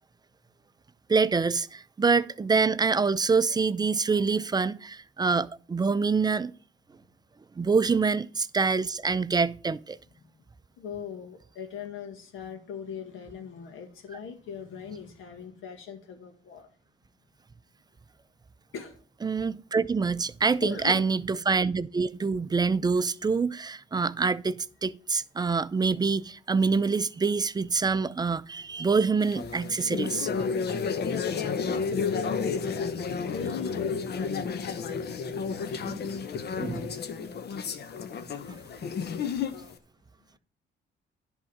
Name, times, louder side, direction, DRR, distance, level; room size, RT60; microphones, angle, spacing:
voice 1, 1.1-6.5 7.6-10.0 19.2-30.3 35.9-36.0 36.6-36.9, right 4 dB, 20° right, 0.4 m, -26 dB
voice 2, 10.8-16.7 18.7-19.0 20.4-21.1 31.6-39.8, left 6 dB, 85° left, 1.8 m, -41 dB
sound 1, 29.2-39.7, left 5 dB, 55° left, 0.9 m, -32 dB
10.5 x 3.7 x 7.2 m
cardioid pair, 90°, 20 cm